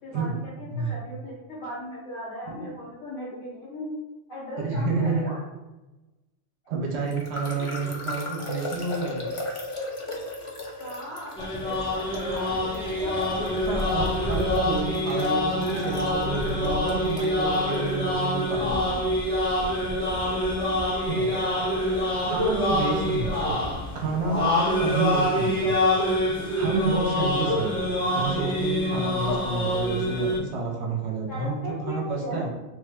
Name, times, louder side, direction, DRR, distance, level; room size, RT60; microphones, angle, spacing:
voice 1, 0.0-4.0 4.3-5.4 7.6-7.9 10.8-13.2 21.2-22.1 23.5-24.0 28.1-28.4 31.3-32.5, left 1 dB, 90° left, -6 dB, 1.6 m, -38 dB
voice 2, 4.6-5.3 6.7-9.2 13.6-19.1 21.0-21.3 22.3-23.5 23.9-24.5 24.8-25.7 26.5-27.7 28.1-32.5, right 4 dB, 65° right, -2 dB, 1.0 m, -29 dB
sound 1, 7.1-17.9, left 1 dB, 55° left, 0.3 m, -37 dB
sound 2, 11.4-30.4, left 1 dB, 5° left, 0.8 m, -26 dB
3.1 x 2.1 x 3.5 m, 1.1 s
omnidirectional pair, 1.3 m